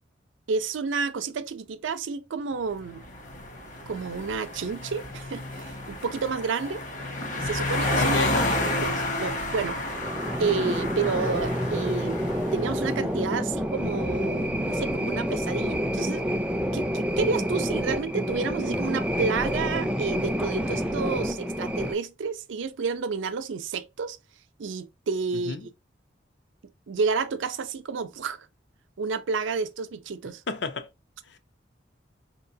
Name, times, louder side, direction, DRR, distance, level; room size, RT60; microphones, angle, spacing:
voice 1, 0.5-3.0 3.9-6.8 7.3-8.2 8.8-9.8 10.4-12.2 12.5-16.2 16.7-24.2 24.6-25.6 26.9-28.5 29.0-30.4, right 5 dB, 80° right, 0.5 m, -30 dB
sound 1, 2.8-13.1, left 1 dB, 40° left, 0.8 m, -31 dB
voice 2, 8.0-8.9 25.5-25.7 30.5-30.9, left 3 dB, 70° left, 0.6 m, -30 dB
sound 2, 9.9-21.9, equal, 5° right, 0.3 m, -28 dB
4.6 x 2.9 x 2.7 m
head